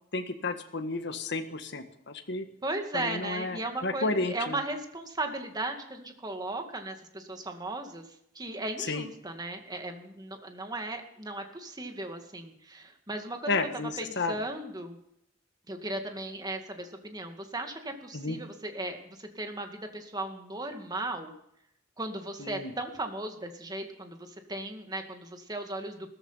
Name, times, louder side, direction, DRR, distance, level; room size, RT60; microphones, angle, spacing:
voice 1, 0.1-2.5 2.9-4.6 8.9-9.1 13.5-14.4 18.1-18.4 22.4-22.7, left 3 dB, 60° left, 7 dB, 1.7 m, -32 dB
voice 2, 2.6-8.1 8.4-13.5 14.0-15.0 15.7-21.3 22.0-26.1, right 2 dB, 20° right, 5 dB, 2.1 m, -36 dB
16.5 x 14.0 x 5.7 m, 0.75 s
head